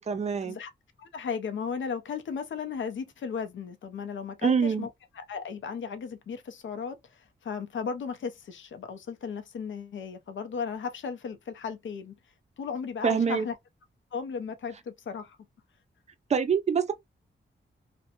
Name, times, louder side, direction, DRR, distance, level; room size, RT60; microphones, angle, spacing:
voice 1, 0.1-0.6 4.4-4.9 13.0-13.5 16.3-16.9, right 6 dB, 35° right, 0.4 m, -25 dB
voice 2, 1.0-4.9 5.2-12.1 12.6-13.6 14.1-15.4, left 6 dB, 75° left, 0.5 m, -35 dB
2.5 x 2.1 x 2.8 m
wide cardioid pair, 165°, 20 cm